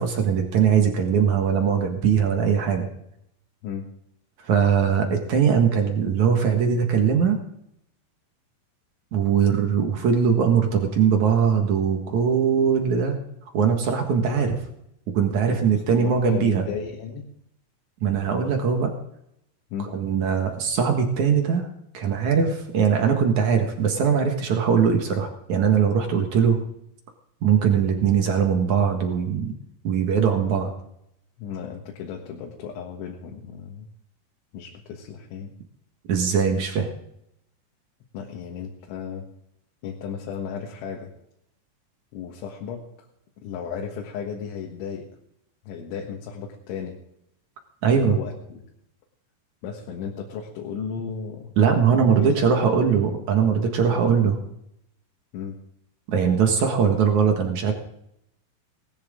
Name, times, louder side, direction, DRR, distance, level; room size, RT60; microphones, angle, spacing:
voice 1, 0.0-2.9 4.4-7.4 9.1-13.2 13.5-14.6 15.1-16.7 18.0-18.9 19.9-21.6 21.9-26.6 27.4-29.5 29.8-30.7 36.1-36.9 47.8-48.2 51.6-54.3 56.1-57.7, right 7 dB, 60° right, 4 dB, 2.0 m, -21 dB
voice 2, 15.5-17.3 19.7-19.9 31.4-33.9 34.5-35.5 38.1-39.3 39.8-41.1 42.1-42.9 43.4-45.1 45.7-47.0 47.9-48.6 49.6-51.5 51.9-52.9 53.6-54.1 55.3-55.6, left 7 dB, 70° left, 0 dB, 3.8 m, -35 dB
19.0 x 14.5 x 3.8 m, 0.77 s
omnidirectional pair, 5.8 m